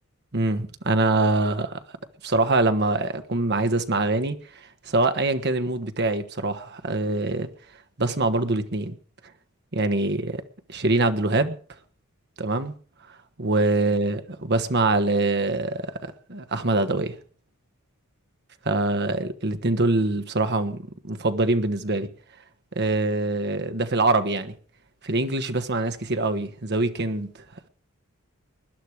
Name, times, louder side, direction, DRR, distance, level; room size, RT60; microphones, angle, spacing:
voice 1, 0.3-1.8 2.2-7.5 8.0-9.0 9.7-10.4 10.7-11.6 12.4-12.7 13.4-17.2 18.6-22.1 22.7-24.5 25.0-27.3, right 2 dB, 55° right, 1.5 m, -24 dB
20.5 x 11.5 x 4.9 m
head